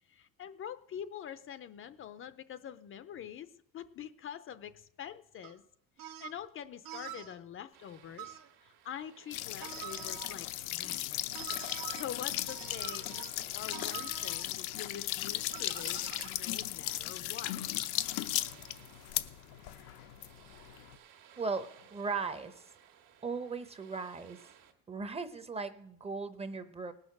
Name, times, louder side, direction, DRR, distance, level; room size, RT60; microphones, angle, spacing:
voice 1, 0.1-5.6 6.0-11.2 11.7-17.6, left 9 dB, 35° left, 12 dB, 0.6 m, -45 dB
sound 1, 5.4-5.5 6.0-6.4 6.8-7.4 8.2-8.5 9.6-10.4 11.3-12.0 12.5-13.4 13.7-14.5 15.5-16.3, right 11 dB, 80° right, 1.2 m, -45 dB
sound 2, 7.7-24.7, right 9 dB, 65° right, 1.8 m, -60 dB
sound 3, 9.3-21.0, left 15 dB, 85° left, 0.8 m, -37 dB
voice 2, 21.4-22.6 23.2-24.4 24.9-26.9, right 4 dB, 15° right, 10 dB, 0.8 m, -37 dB
19.0 x 6.5 x 5.9 m, 0.76 s
cardioid pair, 145°, 35 cm